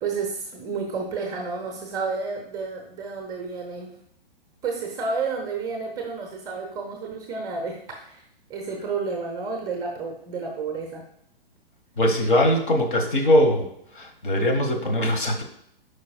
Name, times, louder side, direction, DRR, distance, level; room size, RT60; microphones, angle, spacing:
voice 1, 0.0-3.9 4.6-8.2 8.5-11.0, right 4 dB, 10° right, 2 dB, 0.5 m, -31 dB
voice 2, 12.0-13.7 13.9-15.4, left 1 dB, 55° left, 4 dB, 1.4 m, -21 dB
8.4 x 5.2 x 2.3 m, 0.73 s
figure-of-eight pair, 120°, 30 cm